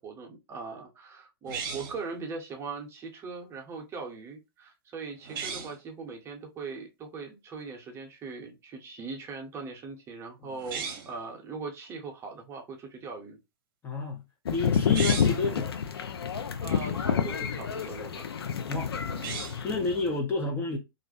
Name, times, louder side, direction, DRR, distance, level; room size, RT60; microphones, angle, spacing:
voice 1, 0.0-13.4 16.6-18.3 19.7-19.8, right 4 dB, 20° right, 0.7 m, -40 dB
sound 1, 1.5-2.1 5.2-5.8 10.6-11.2 14.8-15.5 19.1-19.7, right 6 dB, 55° right, 0.7 m, -36 dB
voice 2, 13.8-14.2 14.5-15.8 18.7-18.9 19.6-20.8, left 3 dB, 20° left, 0.4 m, -30 dB
sound 2, 14.5-20.1, left 7 dB, 80° left, 0.4 m, -29 dB
2.4 x 2.1 x 2.6 m
hypercardioid pair, 120°, 13 cm